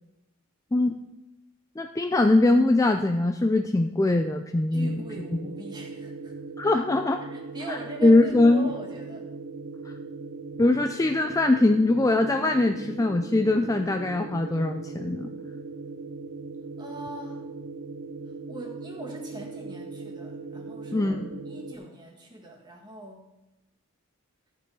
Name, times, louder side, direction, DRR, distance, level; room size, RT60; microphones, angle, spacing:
voice 1, 1.8-5.0 5.3-5.4 6.6-7.2 7.7-8.7 9.8-9.9 10.6-15.3 20.9-21.3, left 2 dB, 15° left, 5 dB, 0.3 m, -22 dB
voice 2, 4.7-6.3 6.8-6.9 7.2-9.3 16.8-17.5 18.5-23.3, right 2 dB, 20° right, -1 dB, 1.7 m, -41 dB
sound 1, 4.8-21.8, right 3 dB, 65° right, 0.9 m, -39 dB
13.5 x 6.9 x 4.7 m, 0.96 s
head